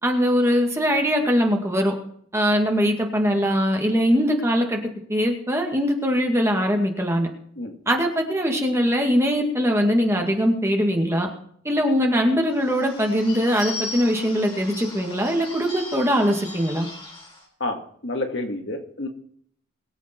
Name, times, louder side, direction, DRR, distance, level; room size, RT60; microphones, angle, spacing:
voice 1, 0.0-1.9 2.3-4.8 5.1-7.3 7.9-11.3 11.6-16.9, equal, 15° right, 2 dB, 2.0 m, -21 dB
Bird / Bell, 12.5-17.5, left 2 dB, 25° left, 4.7 m, -37 dB
voice 2, 17.6-19.1, left 2 dB, 60° left, 3 dB, 2.2 m, -29 dB
22.0 x 8.1 x 4.5 m, 0.63 s
head